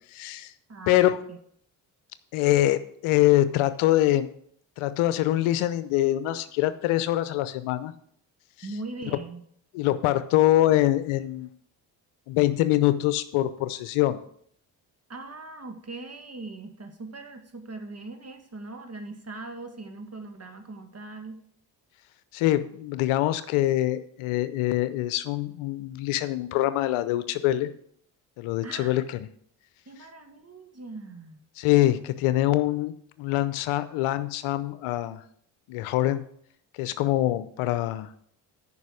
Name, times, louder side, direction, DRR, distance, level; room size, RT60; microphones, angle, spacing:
voice 1, 0.1-0.5 0.9-1.2 2.3-4.3 4.8-7.9 9.7-11.5 12.3-14.2 22.3-27.7 28.4-29.2 31.6-32.9 33.2-35.2 35.7-36.2 36.8-38.1, left 15 dB, 75° left, 13 dB, 0.8 m, -24 dB
voice 2, 0.7-1.4 8.6-9.4 15.1-21.4 28.6-29.0 29.9-31.4, right 3 dB, 30° right, 6 dB, 1.9 m, -40 dB
9.4 x 5.7 x 6.3 m, 0.65 s
hypercardioid pair, 45°, 50 cm